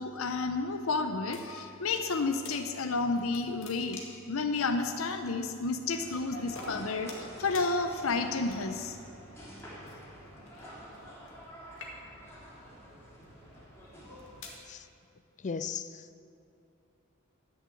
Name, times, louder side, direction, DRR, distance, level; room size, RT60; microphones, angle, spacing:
voice 1, 0.0-4.0 4.3-8.9, left 3 dB, 85° left, 7 dB, 0.7 m, -31 dB
sound 1, 1.3-2.1 2.4-2.6 3.0-4.3 5.1-5.2 6.1-6.3 6.5-7.3 7.5-7.7 8.4-8.9 9.8-11.5 11.7-12.3 13.0-13.2 13.9-14.6, left 3 dB, 65° left, 2.0 m, -47 dB
sound 2, 6.0-14.5, equal, 10° left, 3.4 m, -47 dB
voice 2, 15.4-16.2, left 5 dB, 35° left, 13 dB, 0.4 m, -37 dB
12.0 x 7.1 x 7.7 m, 2.7 s
head